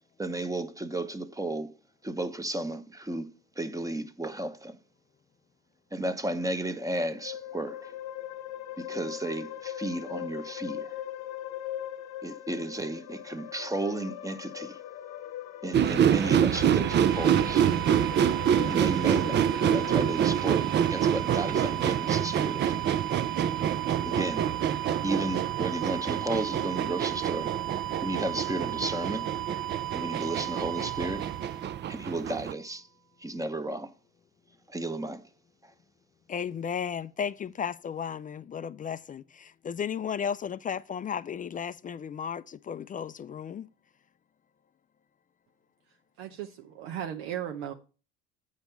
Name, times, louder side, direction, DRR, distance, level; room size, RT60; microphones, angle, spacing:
voice 1, 0.2-1.7 2.0-4.8 5.9-7.9 8.8-11.0 12.2-14.8 15.6-17.7 18.7-22.9 24.0-24.5 25.0-27.5 28.0-29.3 29.9-31.2 31.9-32.9 33.2-33.9 34.7-35.3 35.6-35.7, right 1 dB, 10° right, 0.9 m, -33 dB
sound 1, 6.5-20.2, left 12 dB, 60° left, 0.9 m, -40 dB
sound 2, 15.7-32.5, right 9 dB, 35° right, 0.5 m, -27 dB
sound 3, 16.6-32.4, right 13 dB, 60° right, 1.1 m, -36 dB
voice 2, 36.3-43.7, left 7 dB, 25° left, 0.4 m, -34 dB
voice 3, 46.2-47.7, right 10 dB, 80° right, 0.9 m, -36 dB
8.2 x 5.2 x 5.8 m
supercardioid pair, 85°, 30 cm